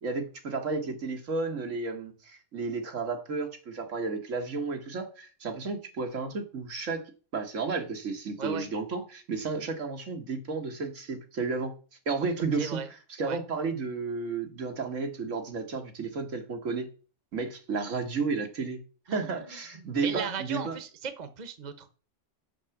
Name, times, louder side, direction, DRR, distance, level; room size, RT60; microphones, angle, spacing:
voice 1, 0.0-7.0 7.3-11.7 12.0-12.8 13.1-16.9 17.3-18.8 19.1-20.8, right 4 dB, 90° right, 1.9 m, -32 dB
voice 2, 19.1-19.5 19.8-21.9, right 6 dB, 40° right, 1.0 m, -37 dB
6.5 x 5.7 x 7.0 m
omnidirectional pair, 1.3 m